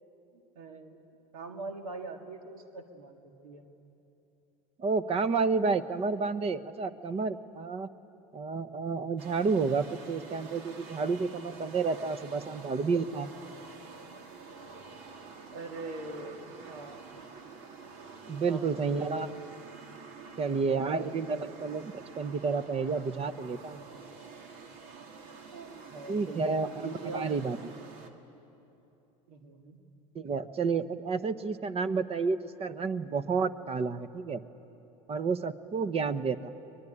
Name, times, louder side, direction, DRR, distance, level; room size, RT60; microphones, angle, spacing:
voice 1, 0.3-1.0 1.3-3.7 15.5-17.2 18.5-19.4 20.3-21.5 25.5-27.4 29.3-29.8, right 2 dB, 90° right, 5 dB, 1.8 m, -43 dB
voice 2, 4.8-7.9 8.3-13.3 18.3-19.3 20.4-23.9 26.1-27.6 30.1-34.4 35.1-36.5, right 4 dB, 35° right, 14 dB, 1.0 m, -30 dB
sound 1, 9.2-28.1, right 5 dB, 70° right, 2.3 m, -48 dB
22.5 x 21.5 x 9.9 m, 3.0 s
hypercardioid pair, 90°, 18 cm